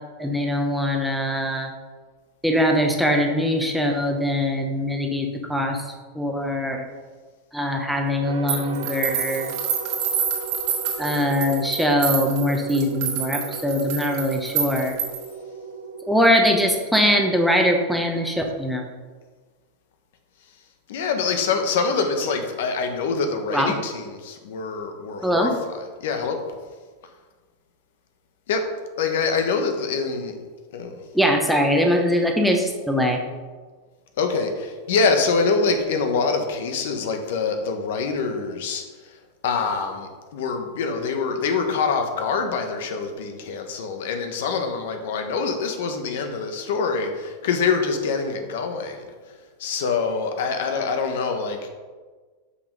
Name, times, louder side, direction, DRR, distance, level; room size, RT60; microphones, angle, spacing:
voice 1, 0.2-1.7 2.4-5.8 6.1-6.8 7.5-9.5 11.0-15.0 16.1-18.8 23.5-23.7 25.2-25.5 31.1-33.2, equal, ahead, 1 dB, 0.9 m, -22 dB
sound 1, 8.2-17.5, right 4 dB, 80° right, 0.7 m, -37 dB
sound 2, 8.5-15.3, right 7 dB, 55° right, 1.8 m, -28 dB
voice 2, 20.9-26.4 28.5-28.7 29.0-30.4 30.7-31.0 34.2-51.7, left 4 dB, 75° left, 5 dB, 1.1 m, -25 dB
6.6 x 5.4 x 5.2 m, 1.4 s
supercardioid pair, 145°, 0 cm